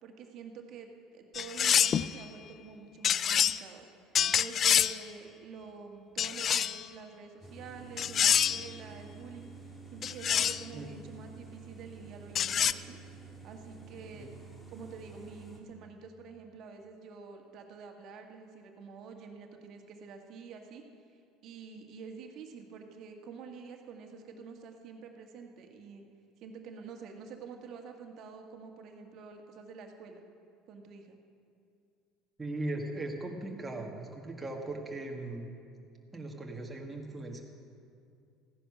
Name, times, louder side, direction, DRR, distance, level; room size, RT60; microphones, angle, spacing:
voice 1, 0.0-9.5 9.9-14.3 14.7-20.8 21.4-26.0 26.4-30.2 30.7-31.2, right 5 dB, 60° right, 3 dB, 1.7 m, -48 dB
sound 1, 1.3-2.1 3.0-3.6 4.1-5.0 6.2-6.8 8.0-8.7 10.0-10.6 12.4-12.7, left 9 dB, 45° left, 0.4 m, -26 dB
sound 2, 7.4-15.6, right 4 dB, 20° left, 3.1 m, -49 dB
voice 2, 32.4-35.5 36.1-37.4, right 2 dB, 15° right, -1 dB, 1.8 m, -38 dB
15.0 x 10.0 x 6.1 m, 2.4 s
hypercardioid pair, 80°, 0 cm